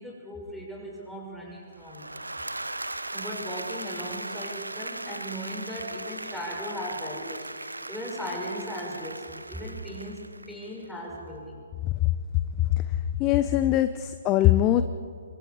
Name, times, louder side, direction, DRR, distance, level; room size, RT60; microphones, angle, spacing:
voice 1, 0.0-2.3 3.1-11.6, equal, 5° left, -4 dB, 6.4 m, -37 dB
Applause / Crowd, 1.8-10.9, right 2 dB, 85° right, 0.9 m, -38 dB
voice 2, 13.2-14.8, left 13 dB, 25° left, 11 dB, 0.7 m, -21 dB
28.0 x 23.5 x 5.0 m, 2.3 s
figure-of-eight pair, 130°, 0 cm